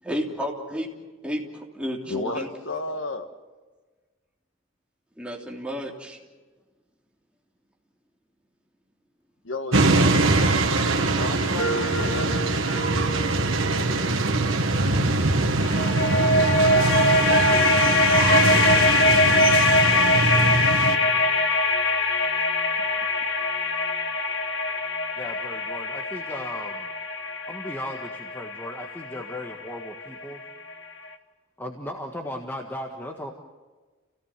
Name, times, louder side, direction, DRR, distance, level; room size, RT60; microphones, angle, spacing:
voice 1, 0.0-0.9 1.2-2.5 5.2-6.2, equal, 5° right, -2 dB, 3.3 m, -31 dB
voice 2, 2.1-3.3 9.4-9.9 11.1-12.5 19.9-20.7, left 2 dB, 75° left, 6 dB, 1.8 m, -33 dB
sound 1, 9.7-21.0, right 2 dB, 80° right, 1.9 m, -23 dB
sound 2, 11.6-14.9 15.6-30.5, left 2 dB, 60° left, 1.9 m, -23 dB
voice 3, 25.1-26.9 27.5-30.4 31.6-33.3, left 1 dB, 10° left, 1 dB, 1.5 m, -36 dB
30.0 x 17.5 x 7.5 m, 1.3 s
head